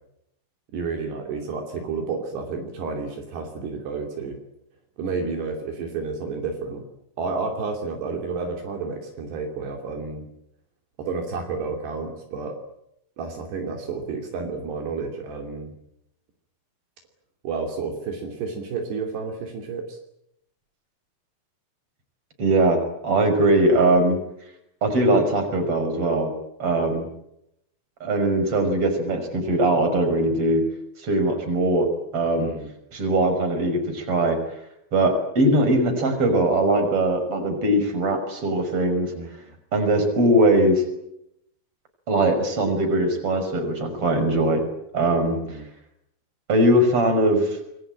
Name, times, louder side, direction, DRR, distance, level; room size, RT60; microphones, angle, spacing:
voice 1, 0.7-4.4 5.0-6.8 7.2-10.3 11.0-12.6 13.2-15.7 17.4-20.0 32.4-32.7 39.2-39.3 45.3-45.7, right 4 dB, 70° right, 3 dB, 4.9 m, -31 dB
voice 2, 22.4-24.2 24.8-26.3 26.6-27.1 28.0-30.6 31.0-31.9 32.1-32.5 32.9-34.4 34.9-39.1 39.7-40.8 42.1-44.6 44.9-45.6 46.5-47.6, right 1 dB, 30° right, 6 dB, 6.3 m, -21 dB
26.0 x 23.0 x 8.9 m, 0.79 s
omnidirectional pair, 5.1 m